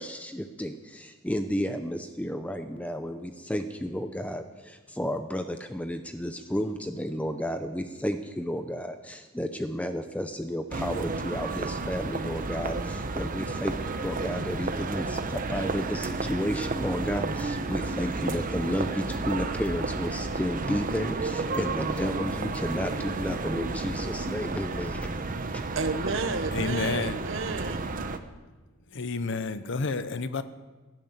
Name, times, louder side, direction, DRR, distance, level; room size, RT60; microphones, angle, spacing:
voice 1, 0.0-13.8 14.0-25.1 25.5-25.6, equal, 5° left, 0.6 m, -32 dB
sound 1, 10.7-28.2, right 3 dB, 45° right, 0.9 m, -32 dB
voice 2, 25.7-27.9, right 3 dB, 70° right, 1.3 m, -31 dB
voice 3, 26.5-27.3 28.9-30.4, left 4 dB, 65° left, 0.8 m, -30 dB
16.5 x 11.0 x 8.0 m
head